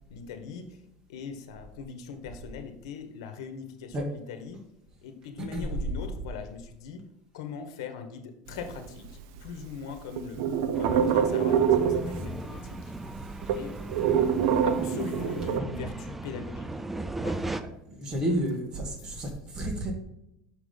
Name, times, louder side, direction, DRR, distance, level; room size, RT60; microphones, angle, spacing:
voice 1, 0.1-0.7 1.1-4.6 5.0-7.0 7.3-10.5 10.8-12.9 13.5-13.8 14.6-16.7 17.2-17.4 18.3-18.4 19.0-19.7, left 6 dB, 85° left, 8 dB, 1.0 m, -41 dB
sound 1, 8.5-9.6 9.9-12.5 12.8-12.9 13.1-15.6, right 8 dB, 70° right, 0.6 m, -25 dB
sound 2, 10.7-17.6, right 2 dB, 5° right, 0.3 m, -37 dB
voice 2, 17.9-19.9, equal, 25° right, 2 dB, 1.5 m, -30 dB
6.0 x 4.9 x 3.9 m, 0.81 s
supercardioid pair, 140°, 3 cm